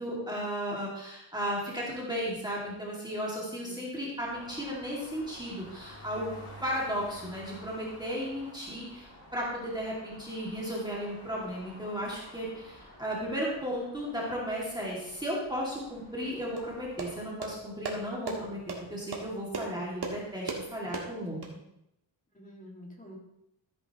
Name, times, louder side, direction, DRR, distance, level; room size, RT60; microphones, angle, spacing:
voice 1, 0.0-6.3 6.6-21.4, equal, 10° right, -5 dB, 2.4 m, -35 dB
voice 2, 3.3-3.9 22.3-23.2, equal, 15° left, -2 dB, 2.2 m, -49 dB
sound 1, 4.2-17.2, left 1 dB, 35° left, 3.9 m, -51 dB
sound 2, 16.6-21.5, right 3 dB, 55° right, 1.9 m, -39 dB
14.0 x 9.6 x 3.1 m, 0.81 s
wide cardioid pair, 175°, 46 cm